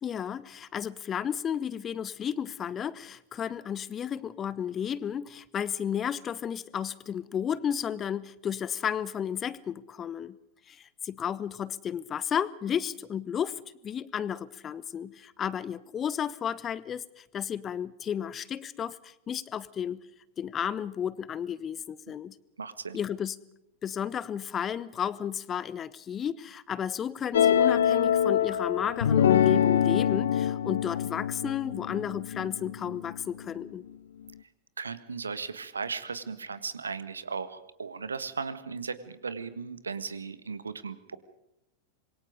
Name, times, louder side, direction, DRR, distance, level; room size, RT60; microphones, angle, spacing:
voice 1, 0.0-10.4 10.7-20.0 20.4-22.4 22.9-23.4 23.8-33.8, left 8 dB, 25° left, 20 dB, 1.0 m, -33 dB
voice 2, 22.6-23.0 34.8-41.2, right 5 dB, 75° right, 14 dB, 1.6 m, -36 dB
sound 1, 27.3-33.4, left 9 dB, 65° left, 0.9 m, -25 dB
27.0 x 23.0 x 5.1 m, 0.86 s
figure-of-eight pair, 90°, 0 cm